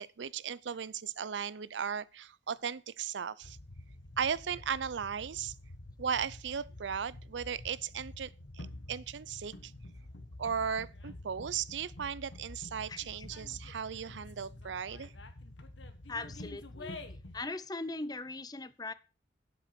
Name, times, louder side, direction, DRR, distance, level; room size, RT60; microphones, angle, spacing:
voice 1, 0.0-3.6 4.2-5.5 6.0-9.7 10.4-15.1, right 7 dB, 80° right, 0.5 m, -36 dB
sound 1, 3.4-17.4, left 1 dB, 90° left, 1.5 m, -48 dB
voice 2, 12.9-13.3 16.1-17.0 17.3-18.9, left 2 dB, 20° left, 0.6 m, -40 dB
9.3 x 7.8 x 6.0 m
head